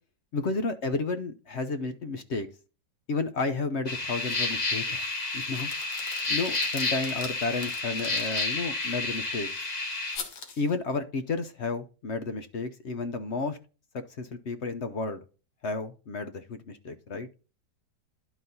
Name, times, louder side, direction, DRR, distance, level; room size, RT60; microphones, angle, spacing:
voice 1, 0.3-2.5 3.1-5.0 5.3-5.7 6.3-9.5 10.6-13.6 13.9-15.2 15.6-17.3, left 3 dB, 55° left, 9 dB, 0.9 m, -32 dB
sound 1, 3.9-10.2, left 3 dB, 30° left, 1.1 m, -30 dB
sound 2, 4.2-4.6 4.9-9.2 10.1-10.8, left 5 dB, 70° left, 1.9 m, -44 dB
11.5 x 4.1 x 3.9 m, 0.34 s
omnidirectional pair, 1.8 m